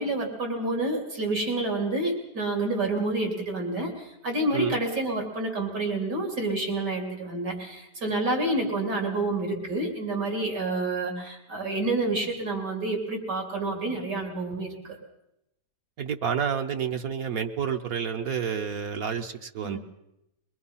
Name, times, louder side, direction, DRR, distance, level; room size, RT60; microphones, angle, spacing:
voice 1, 0.0-15.0 19.6-19.8, right 2 dB, 85° right, 2 dB, 4.0 m, -28 dB
voice 2, 16.0-19.8, right 7 dB, 60° right, 5 dB, 1.3 m, -29 dB
23.0 x 21.0 x 5.6 m, 0.86 s
omnidirectional pair, 1.8 m